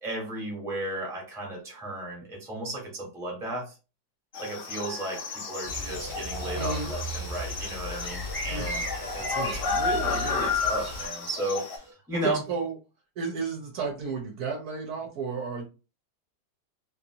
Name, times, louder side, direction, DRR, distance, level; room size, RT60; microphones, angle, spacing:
voice 1, 0.0-3.7 4.4-8.8 9.1-12.4, right 1 dB, ahead, -1 dB, 0.7 m, -34 dB
sound 1, 4.3-11.8, left 4 dB, 65° left, 0.8 m, -32 dB
sound 2, 5.6-11.1, equal, 45° right, 0.6 m, -37 dB
sound 3, 5.9-11.9, right 1 dB, 30° left, 0.4 m, -41 dB
voice 2, 6.6-6.9 8.5-8.8 9.3-9.6 12.1-12.7 13.2-15.6, right 4 dB, 65° right, 1 dB, 1.1 m, -33 dB
3.0 x 2.5 x 2.7 m, 0.32 s
omnidirectional pair, 1.9 m